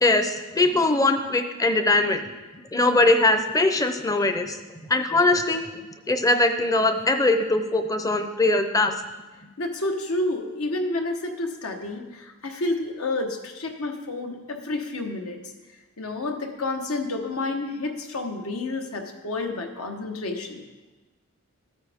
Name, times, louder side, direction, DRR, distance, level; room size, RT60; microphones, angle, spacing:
voice 1, 0.0-2.2 2.7-4.6 4.9-5.7 6.1-8.9, left 2 dB, 15° left, 7 dB, 0.6 m, -21 dB
voice 2, 9.6-15.4 16.0-20.6, left 2 dB, 75° left, 4 dB, 1.2 m, -30 dB
13.5 x 9.0 x 3.6 m, 1.2 s
head